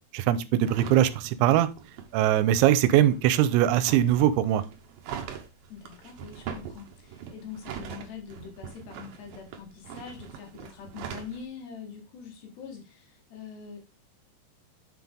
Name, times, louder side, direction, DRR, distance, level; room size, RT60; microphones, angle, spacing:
voice 1, 0.1-1.7 2.1-4.6, right 12 dB, 85° right, 2.9 m, -21 dB
sound 1, 0.6-11.4, right 8 dB, 70° right, 2.2 m, -42 dB
voice 2, 5.7-13.8, left 6 dB, 70° left, 3.6 m, -44 dB
7.4 x 6.0 x 3.6 m
omnidirectional pair, 5.3 m